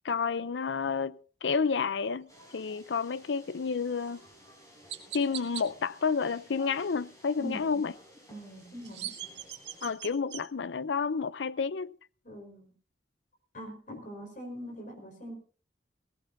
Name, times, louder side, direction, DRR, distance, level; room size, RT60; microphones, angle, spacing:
voice 1, 0.0-4.2 5.1-7.9 9.8-11.9, left 5 dB, 85° left, 0.6 m, -30 dB
sound 1, 2.3-9.9, equal, 20° left, 6.0 m, -55 dB
Chirp tweet, 4.0-4.1 4.9-5.6 8.6-10.4, right 12 dB, 80° right, 1.8 m, -40 dB
voice 2, 7.4-7.9 8.3-9.1 12.2-12.7 13.5-15.3, right 1 dB, 50° left, 4.5 m, -43 dB
18.0 x 17.5 x 2.7 m
head